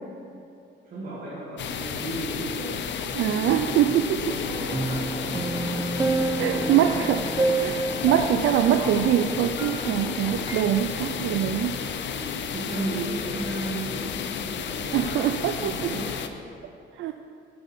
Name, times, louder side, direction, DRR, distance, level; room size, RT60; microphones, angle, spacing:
voice 1, 0.8-5.9 6.4-7.1 11.3-16.3, right 2 dB, 45° right, -8 dB, 2.2 m, -36 dB
sound 1, 1.6-16.3, left 7 dB, 65° left, 0.6 m, -32 dB
voice 2, 3.1-4.2 6.4-7.2 7.6-11.7 14.9-15.9 17.0-17.1, right 10 dB, 75° right, 6 dB, 0.4 m, -23 dB
sound 2, 4.1-10.6, left 2 dB, 25° left, 0.8 m, -39 dB
sound 3, 4.7-10.2 10.5-10.6, right 3 dB, 15° right, 0.7 m, -29 dB
6.8 x 6.2 x 6.7 m, 2.6 s
cardioid pair, 90°, 20 cm